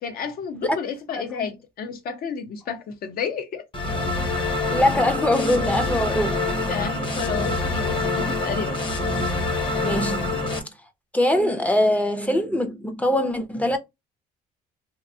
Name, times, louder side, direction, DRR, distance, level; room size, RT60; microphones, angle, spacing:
voice 1, 0.0-3.6 6.1-6.2 6.7-8.8, left 6 dB, 60° left, 0.8 m, -31 dB
sound 1, 3.7-10.6, left 2 dB, 30° left, 0.9 m, -25 dB
voice 2, 4.7-6.4 9.8-10.4 11.1-13.8, left 1 dB, 10° left, 0.6 m, -22 dB
2.8 x 2.5 x 2.7 m
cardioid pair, 110°, 17 cm